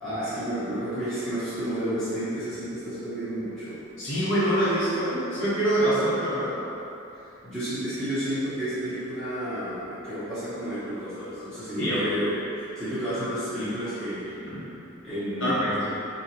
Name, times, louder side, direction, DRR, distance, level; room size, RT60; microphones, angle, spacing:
voice 1, 0.0-3.8 7.1-14.4 15.0-15.9, equal, 5° left, -16 dB, 0.9 m, -31 dB
voice 2, 4.0-6.5 11.8-12.1 14.4-14.6 15.4-15.9, right 1 dB, 65° left, -8 dB, 1.1 m, -25 dB
3.8 x 2.5 x 4.3 m, 2.9 s
head